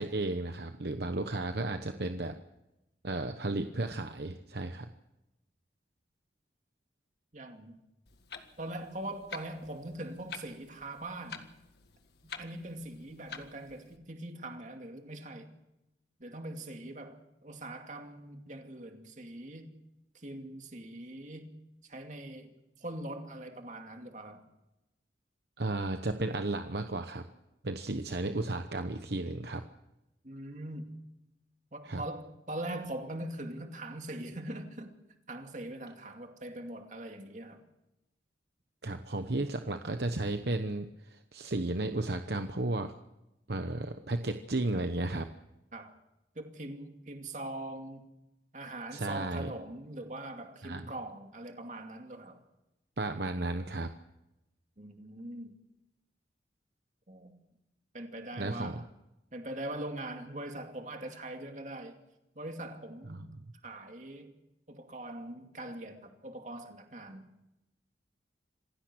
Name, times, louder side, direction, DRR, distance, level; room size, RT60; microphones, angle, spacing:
voice 1, 0.0-2.3 3.0-4.9 25.6-27.2 27.6-29.6 31.9-32.0 38.8-42.9 43.5-45.3 48.9-49.5 50.6-50.9 53.0-53.9 58.4-58.8 63.1-63.2, right 2 dB, 65° right, 1.0 m, -34 dB
voice 2, 7.3-7.8 8.6-11.5 12.2-15.5 16.2-19.7 20.1-21.5 21.8-24.4 30.2-30.9 31.7-34.9 35.3-37.6 45.7-45.9 46.3-48.1 48.5-52.4 54.8-55.6 57.1-57.3 57.9-58.9 59.3-62.0 62.3-63.3 63.6-64.3 64.7-67.3, right 1 dB, 45° right, 2.5 m, -42 dB
Clock, 8.1-14.0, left 6 dB, 65° left, 1.8 m, -49 dB
27.0 x 16.5 x 6.3 m
head